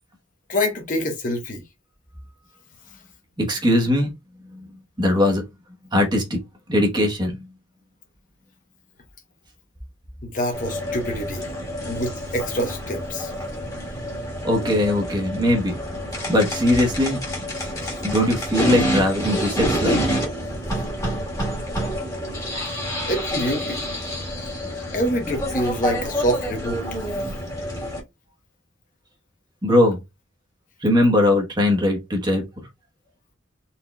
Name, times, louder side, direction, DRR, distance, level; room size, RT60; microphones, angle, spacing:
voice 1, 0.5-1.6 10.2-11.5 11.9-13.3 23.1-23.8 24.9-26.8, equal, 45° left, 1.0 m, -26 dB
voice 2, 3.4-4.1 4.5-4.7 5.0-5.4 5.9-6.4 6.7-7.5 14.4-15.7 16.3-17.2 18.0-20.0 29.6-30.0 30.8-32.4, left 1 dB, 20° right, 1.1 m, -20 dB
sound 1, 10.5-28.0, equal, 20° left, 1.5 m, -28 dB
4.2 x 3.6 x 2.3 m
head